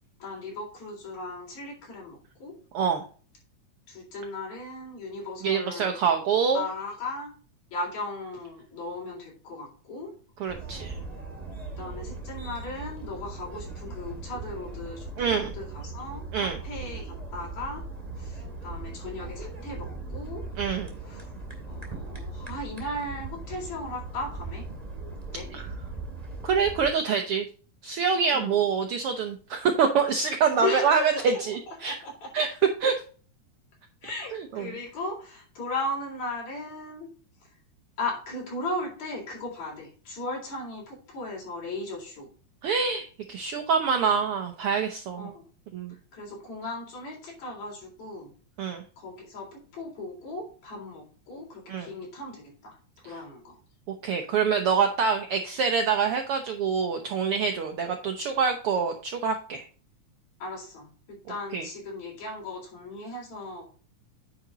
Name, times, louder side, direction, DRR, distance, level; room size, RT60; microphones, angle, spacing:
voice 1, 0.2-2.5 3.9-6.0 6.5-7.3 7.7-10.1 11.8-17.8 18.1-20.4 21.0-21.3 21.7-24.6 25.3-25.5 28.3-28.6 30.6-32.5 34.0-37.1 38.0-42.3 45.2-45.4 45.9-48.3 49.0-52.8 53.0-53.6 60.4-63.6, left 2 dB, 60° left, -3 dB, 5.0 m, -36 dB
voice 2, 5.4-6.6 10.4-11.0 15.2-15.5 16.3-16.6 20.6-20.9 25.5-25.6 26.4-27.5 27.8-32.0 32.3-32.5 32.8-32.9 34.3-34.7 42.6-45.3 45.7-45.9 48.6-48.8 51.7-51.9 53.9-59.6 61.5-61.7, right 6 dB, 80° right, 5 dB, 1.2 m, -26 dB
sound 1, 10.5-26.9, right 3 dB, 15° right, 1.6 m, -39 dB
9.4 x 5.0 x 4.0 m, 0.40 s
omnidirectional pair, 3.6 m